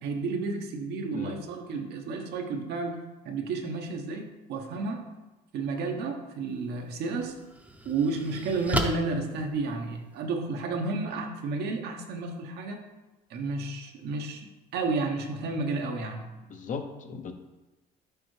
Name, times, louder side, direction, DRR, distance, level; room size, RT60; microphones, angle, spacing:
voice 1, 0.0-3.0 3.2-5.1 5.5-7.3 7.8-12.8 13.3-16.3, right 3 dB, 75° right, 3 dB, 1.0 m, -31 dB
sound 1, 6.5-6.6 7.2-10.2, right 1 dB, 10° right, 0.6 m, -34 dB
voice 2, 16.5-17.3, left 5 dB, 50° left, 6 dB, 0.7 m, -37 dB
6.7 x 4.9 x 3.2 m, 1.1 s
cardioid pair, 110°, 17 cm